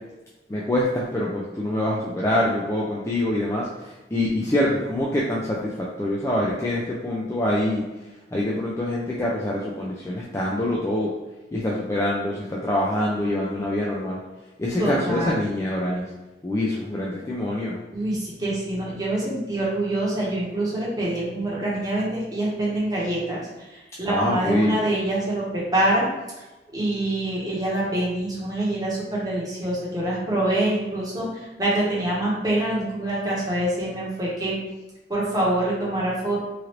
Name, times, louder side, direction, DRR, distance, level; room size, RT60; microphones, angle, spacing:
voice 1, 0.5-7.8 8.3-11.1 11.5-14.2 14.6-16.1 16.4-17.8 24.1-24.8, left 1 dB, 15° left, -5 dB, 0.3 m, -25 dB
voice 2, 14.8-15.4 17.9-26.1 26.7-34.6 35.1-36.4, right 1 dB, 20° right, -6 dB, 0.8 m, -25 dB
3.1 x 2.5 x 2.9 m, 1.1 s
head